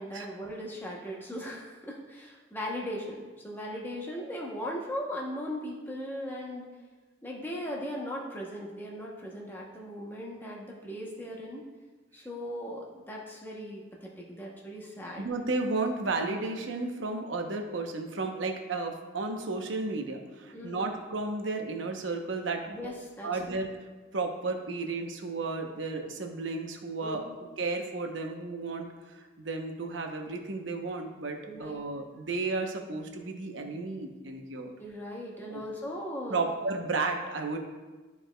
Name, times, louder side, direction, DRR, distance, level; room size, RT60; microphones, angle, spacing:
voice 1, 0.0-6.6 7.2-11.6 12.1-15.3 20.5-20.9 22.7-23.6 27.0-27.4 31.5-31.8 34.8-36.4, equal, 10° left, -3 dB, 0.8 m, -38 dB
voice 2, 15.2-22.8 23.2-23.7 24.1-27.2 27.6-28.9 29.2-34.7 35.5-35.6 36.3-37.6, right 3 dB, 80° right, 3 dB, 0.8 m, -33 dB
12.5 x 4.7 x 2.2 m, 1.3 s
head